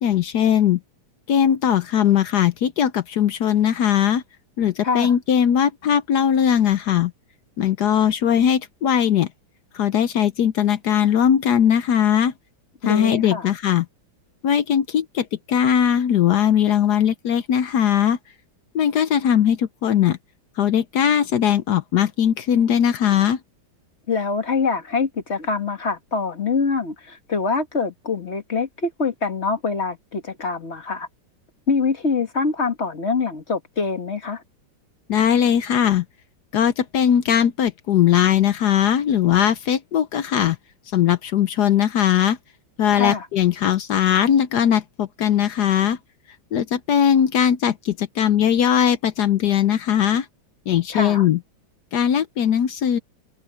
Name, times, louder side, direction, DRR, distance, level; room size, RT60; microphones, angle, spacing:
voice 1, 0.0-0.8 1.3-4.2 4.6-7.1 7.6-9.3 9.7-12.3 12.8-13.9 14.4-18.2 18.7-20.2 20.6-23.4 35.1-36.0 36.5-40.6 40.9-42.4 42.8-46.0 46.5-50.3 50.7-51.4 51.9-53.0, left 9 dB, 65° left, 1.1 m, -19 dB
voice 2, 4.8-5.1 12.8-13.5 24.1-31.1 31.7-34.4 42.9-43.3 50.9-51.3, left 4 dB, 35° left, 2.0 m, -24 dB
omnidirectional pair, 2.2 m